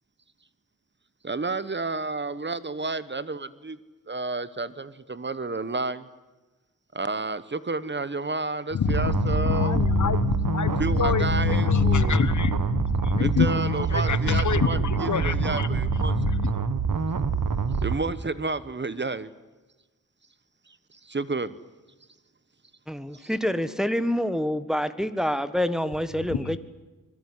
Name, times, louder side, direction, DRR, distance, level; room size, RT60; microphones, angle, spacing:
voice 1, 1.2-3.8 4.1-6.1 6.9-10.2 10.8-12.3 13.2-16.3 17.8-19.3 20.7-21.6 23.1-23.3, right 3 dB, 30° right, 15 dB, 1.1 m, -31 dB
voice 2, 8.7-15.7 15.9-16.5 26.3-26.6, left 7 dB, 55° left, 15 dB, 1.3 m, -26 dB
sound 1, 8.8-18.0, right 5 dB, 70° right, 1.9 m, -26 dB
voice 3, 22.9-26.6, equal, ahead, 11 dB, 1.4 m, -27 dB
26.0 x 21.0 x 9.9 m, 1.2 s
wide cardioid pair, 105°, 34 cm